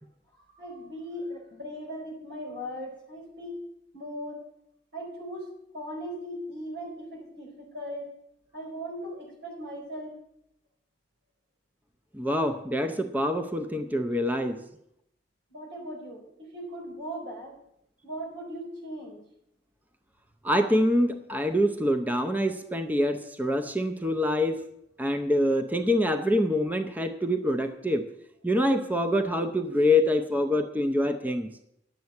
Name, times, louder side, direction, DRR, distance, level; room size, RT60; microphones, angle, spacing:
voice 1, 0.5-3.6 3.9-4.4 4.9-8.1 8.5-10.2 15.5-17.6 18.0-19.2, equal, 85° right, -1 dB, 4.5 m, -38 dB
voice 2, 12.1-14.6 20.4-24.6 25.0-28.1 28.4-31.5, left 1 dB, 10° right, 6 dB, 0.6 m, -25 dB
10.5 x 8.0 x 7.1 m, 0.78 s
head